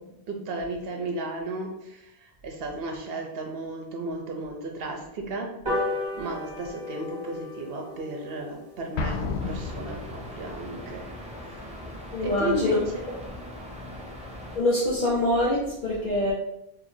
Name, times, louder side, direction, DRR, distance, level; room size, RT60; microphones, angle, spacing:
voice 1, 0.3-5.5 6.2-11.0 12.2-13.1, right 2 dB, 65° right, 1 dB, 1.0 m, -34 dB
sound 1, 5.7-12.4 12.8-12.9 13.2-13.4 13.6-13.7 14.0-14.1 14.4-14.7 15.1-15.2, left 2 dB, 50° right, 1.4 m, -36 dB
Explosion, 9.0-10.6, left 4 dB, 85° left, 0.9 m, -32 dB
sound 2, 9.4-14.6, equal, 10° right, 0.4 m, -40 dB
voice 2, 12.1-12.8 14.5-16.3, left 1 dB, 45° left, -7 dB, 0.9 m, -24 dB
4.5 x 2.8 x 2.7 m, 0.83 s
omnidirectional pair, 1.1 m